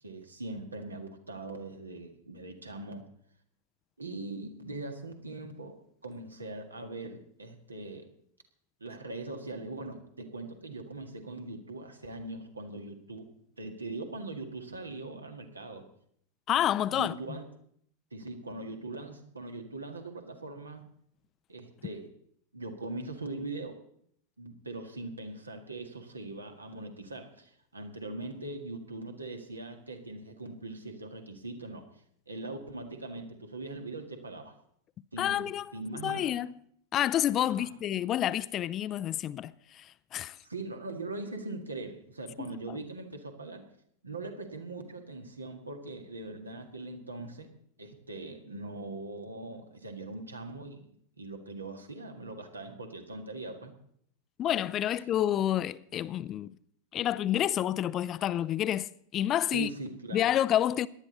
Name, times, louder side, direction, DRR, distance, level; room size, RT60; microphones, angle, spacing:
voice 1, 0.0-3.1 4.0-8.1 8.8-13.3 13.6-15.9 16.9-17.4 18.1-20.9 21.5-22.1 22.5-23.8 24.4-31.9 32.3-34.5 35.1-36.4 37.4-37.7 40.4-43.7 44.0-47.5 47.8-50.9 51.2-53.7 59.5-60.3, right 2 dB, 80° right, 1.8 m, -41 dB
voice 2, 16.5-17.1 35.2-35.7 36.0-36.5 36.9-40.4 42.4-42.8 54.4-56.5 56.9-59.7 60.1-60.9, left 11 dB, 30° left, 0.4 m, -29 dB
18.0 x 11.5 x 4.1 m
figure-of-eight pair, 90°, 0 cm